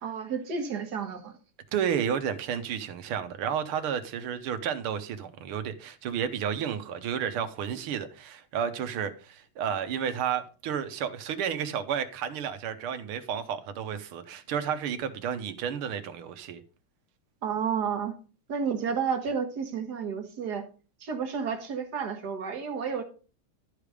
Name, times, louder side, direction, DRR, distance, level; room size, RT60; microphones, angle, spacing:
voice 1, 0.0-1.4 17.4-18.1 18.5-20.7 21.0-23.0, right 6 dB, 55° right, 1.7 m, -31 dB
voice 2, 1.7-16.6, right 8 dB, 90° right, 1.8 m, -31 dB
12.0 x 5.0 x 4.9 m
omnidirectional pair, 2.3 m